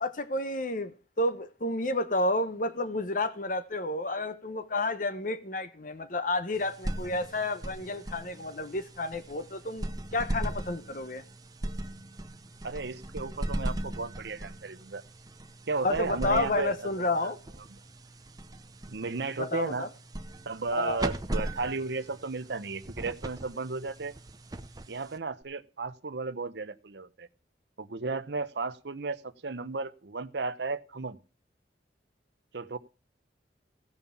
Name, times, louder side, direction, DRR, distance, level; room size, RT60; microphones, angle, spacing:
voice 1, 0.0-9.9 10.1-11.2 15.8-17.4 19.4-19.9 20.7-21.0, left 2 dB, 45° left, 0.9 m, -31 dB
sound 1, 6.5-25.4, right 1 dB, 20° right, 0.7 m, -39 dB
voice 2, 12.6-15.0 15.7-17.3 18.9-19.9 20.5-24.1 24.9-27.3 27.8-31.2 32.5-32.8, right 3 dB, 70° right, 0.8 m, -34 dB
16.0 x 5.5 x 7.1 m
head